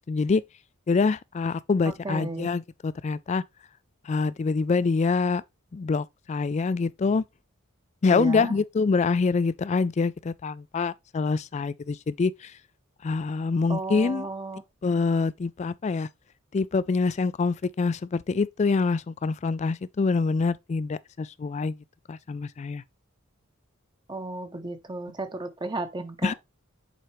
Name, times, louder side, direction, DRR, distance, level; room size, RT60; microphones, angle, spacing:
voice 1, 0.1-0.4 0.9-3.4 4.1-5.4 5.7-7.2 8.0-12.5 13.0-14.3 14.8-16.1 16.5-21.8 22.1-22.8 26.2-26.3, left 4 dB, 35° left, 0.3 m, -25 dB
voice 2, 2.0-2.5 8.1-8.5 13.7-14.6 24.1-26.3, right 2 dB, 20° right, 0.8 m, -33 dB
7.5 x 4.6 x 3.1 m
head